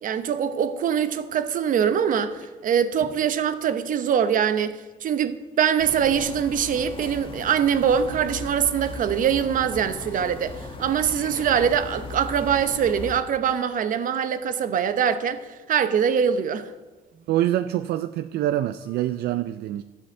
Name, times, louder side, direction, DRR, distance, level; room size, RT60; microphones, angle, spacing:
voice 1, 0.0-4.7 5.0-10.5 10.8-15.4 15.7-16.7, right 8 dB, 50° right, 0.9 m, -23 dB
Telephone, 1.8-2.4 3.0-3.1 4.9-5.0 5.4-5.6 10.9-11.7 18.8-19.0, left 4 dB, 50° left, 1.9 m, -40 dB
sound 1, 5.8-13.2, left 2 dB, 30° left, 1.5 m, -38 dB
voice 2, 17.3-19.8, right 13 dB, 70° right, 0.4 m, -25 dB
12.5 x 5.7 x 7.9 m
cardioid pair, 110°, 17 cm